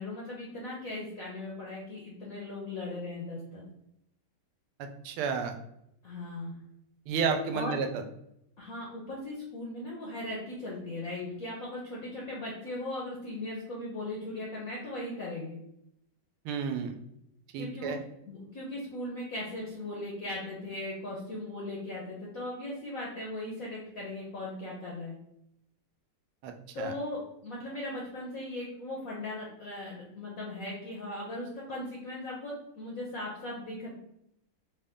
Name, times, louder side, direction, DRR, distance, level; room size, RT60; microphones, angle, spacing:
voice 1, 0.0-3.6 6.0-6.5 7.5-7.7 8.6-15.6 17.5-17.9 18.3-25.2 26.7-33.9, left 2 dB, 65° left, -4 dB, 0.8 m, -38 dB
voice 2, 4.8-5.5 7.1-8.0 16.4-17.0 17.5-18.0 26.4-26.9, right 5 dB, 85° right, 6 dB, 1.5 m, -32 dB
3.9 x 2.2 x 3.5 m, 0.78 s
omnidirectional pair, 2.3 m